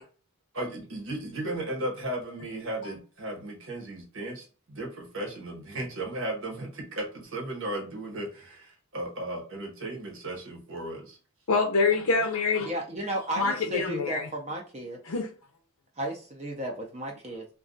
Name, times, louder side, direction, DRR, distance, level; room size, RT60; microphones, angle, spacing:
voice 1, 0.5-11.2, right 1 dB, 60° right, 1.0 m, -35 dB
voice 2, 11.5-12.7 13.4-14.3 15.1-15.3, left 4 dB, 75° left, 0.5 m, -25 dB
voice 3, 12.6-15.0 16.0-17.5, right 1 dB, 30° right, 0.5 m, -34 dB
2.5 x 2.3 x 3.8 m
head